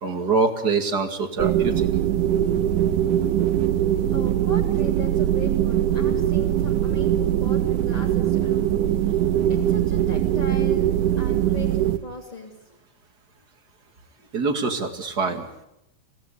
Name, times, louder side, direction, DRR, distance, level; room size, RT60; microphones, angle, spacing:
voice 1, 0.0-1.9 14.3-15.5, right 4 dB, 35° right, 6 dB, 2.1 m, -24 dB
sound 1, 1.4-12.0, right 11 dB, 70° right, 2.5 m, -21 dB
voice 2, 4.1-10.9 11.2-12.5, left 2 dB, 10° left, -3 dB, 2.6 m, -39 dB
27.5 x 17.5 x 10.0 m, 0.90 s
omnidirectional pair, 4.2 m